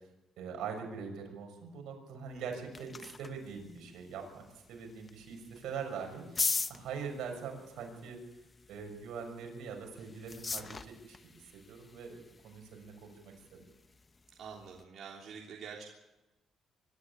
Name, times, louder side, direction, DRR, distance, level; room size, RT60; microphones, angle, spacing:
voice 1, 0.4-8.2 8.7-13.6, right 6 dB, 85° right, 3 dB, 6.4 m, -43 dB
sound 1, 2.3-14.8, left 4 dB, 30° left, 1.0 m, -42 dB
voice 2, 14.4-15.8, right 6 dB, 65° right, -1 dB, 3.3 m, -46 dB
24.5 x 13.0 x 9.7 m, 1.0 s
cardioid pair, 90°, 0 cm